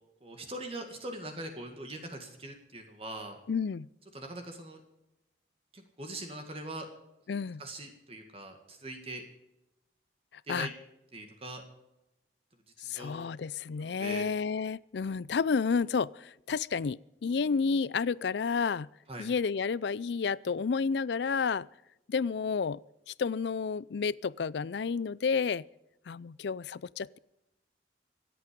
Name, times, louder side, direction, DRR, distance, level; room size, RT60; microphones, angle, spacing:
voice 1, 0.2-3.4 4.1-4.8 5.7-6.9 7.6-9.2 10.5-10.7 11.1-11.6 12.8-13.3 13.8-14.3 19.1-19.3, right 1 dB, 30° right, 4 dB, 1.9 m, -42 dB
voice 2, 3.5-3.9 7.3-7.6 10.5-10.7 12.8-18.9 19.2-21.7 22.1-22.8 23.1-25.6 26.1-27.2, left 5 dB, 70° left, 22 dB, 0.4 m, -31 dB
25.5 x 8.6 x 5.2 m, 0.90 s
head